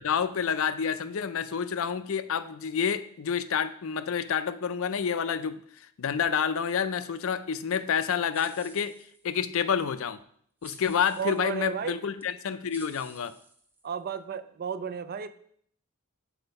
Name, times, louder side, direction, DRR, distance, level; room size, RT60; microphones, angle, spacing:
voice 1, 0.0-5.6 6.0-9.0 9.2-10.2 10.6-13.3, left 7 dB, 70° left, 13 dB, 0.5 m, -28 dB
sound 1, 8.3-9.4 10.6-11.6 12.2-12.3 12.7-14.1, right 1 dB, 10° right, 0.7 m, -52 dB
voice 2, 11.2-12.0 13.8-15.3, right 7 dB, 45° right, 12 dB, 0.4 m, -33 dB
7.0 x 4.4 x 5.4 m, 0.63 s
head